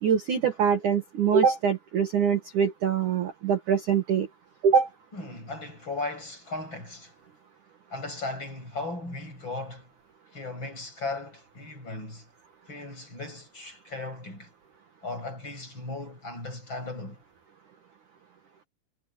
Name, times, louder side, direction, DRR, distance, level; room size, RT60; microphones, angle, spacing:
voice 1, 0.0-4.3 4.6-4.9, right 7 dB, 55° right, 2.3 m, -23 dB
voice 2, 5.1-7.1 7.9-9.9 10.3-12.3 12.7-14.5 15.0-17.2, left 2 dB, 20° left, 8.6 m, -37 dB
omnidirectional pair, 6.0 m